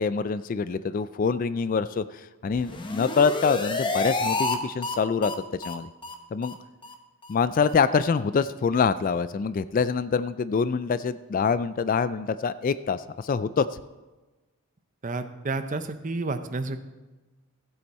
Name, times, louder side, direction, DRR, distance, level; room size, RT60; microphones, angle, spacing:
voice 1, 0.0-5.9 6.3-6.6 7.3-13.8, left 5 dB, 40° left, 14 dB, 0.3 m, -25 dB
sound 1, 2.5-4.6 4.8-4.9 5.2-5.3 5.6-5.7 6.0-6.1 6.4-6.5 6.8-6.9 7.2-7.3 7.6-7.7, left 3 dB, 20° left, 0.8 m, -29 dB
voice 2, 15.0-16.8, right 3 dB, 35° right, 10 dB, 0.7 m, -30 dB
15.0 x 8.0 x 4.2 m, 1.2 s
head